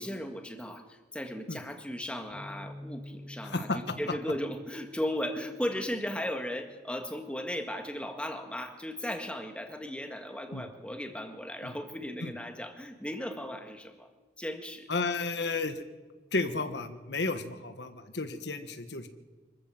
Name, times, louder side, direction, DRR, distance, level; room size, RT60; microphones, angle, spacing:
voice 1, 0.0-14.1 14.4-14.9, left 1 dB, 5° left, 5 dB, 1.7 m, -36 dB
Bass guitar, 2.3-6.7 7.4-8.5, left 1 dB, 15° right, 4.3 m, -50 dB
voice 2, 3.4-3.8 10.5-10.7 11.6-11.7 12.2-12.3 14.9-15.8 16.3-19.1, left 3 dB, 80° left, 9 dB, 1.4 m, -32 dB
25.0 x 14.0 x 7.7 m, 1.4 s
head